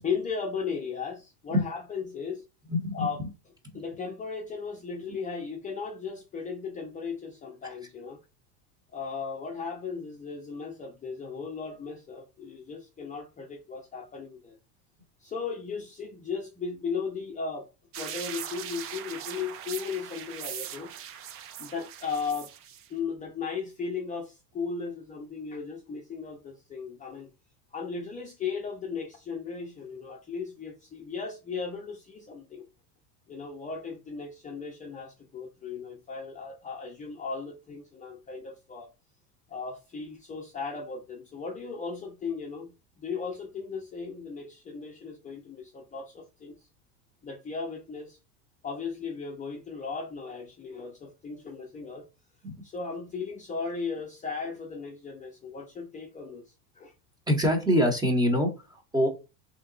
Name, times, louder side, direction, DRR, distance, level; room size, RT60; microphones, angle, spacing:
voice 1, 0.0-2.4 2.9-3.2 3.7-8.2 8.9-14.6 15.2-17.7 18.0-22.5 22.9-27.3 27.7-32.6 33.3-38.9 39.5-46.6 47.2-48.2 48.6-52.1 52.6-56.9, left 5 dB, 15° left, 0.7 m, -36 dB
voice 2, 2.7-3.3 5.1-5.2 52.4-52.5 57.3-59.1, equal, 10° right, 1.0 m, -25 dB
sound 1, 17.9-22.9, right 9 dB, 30° right, 0.4 m, -40 dB
3.3 x 3.0 x 3.9 m
supercardioid pair, 125°, 47 cm